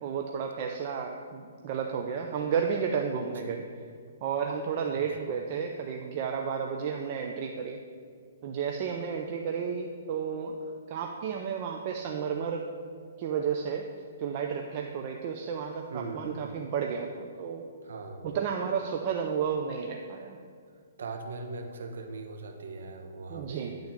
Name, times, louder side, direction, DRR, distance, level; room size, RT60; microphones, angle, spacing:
voice 1, 0.0-3.6 4.2-7.8 8.4-10.6 10.9-12.6 13.2-13.9 14.2-15.9 16.1-17.7 18.2-20.4 23.3-23.8, right 6 dB, 40° right, 2 dB, 0.6 m, -32 dB
voice 2, 15.9-16.2 17.8-18.2 21.0-23.8, right 3 dB, 80° right, 5 dB, 1.2 m, -40 dB
10.5 x 3.9 x 7.2 m, 2.1 s
hypercardioid pair, 155°, 0 cm